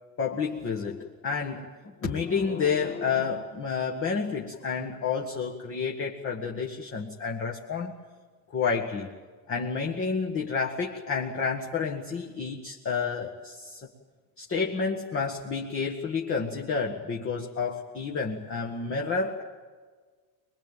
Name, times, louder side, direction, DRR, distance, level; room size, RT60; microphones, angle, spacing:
voice 1, 0.2-7.9 8.5-9.1 9.5-13.8 14.4-19.4, left 5 dB, 30° left, 0 dB, 1.8 m, -30 dB
23.0 x 22.0 x 9.0 m, 1.5 s
supercardioid pair, 140°, 46 cm